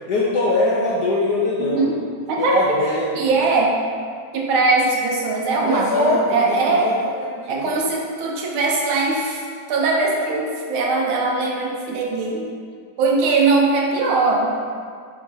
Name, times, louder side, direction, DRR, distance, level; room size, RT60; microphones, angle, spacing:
voice 1, 0.1-1.9 2.4-3.4 5.6-7.6, left 2 dB, 65° left, -5 dB, 1.1 m, -22 dB
voice 2, 1.6-2.0 2.3-2.8 3.1-3.8 4.3-6.9 7.5-12.5 13.0-14.5, right 3 dB, 85° right, -1 dB, 1.7 m, -20 dB
6.9 x 3.7 x 4.2 m, 2.1 s
omnidirectional pair, 2.2 m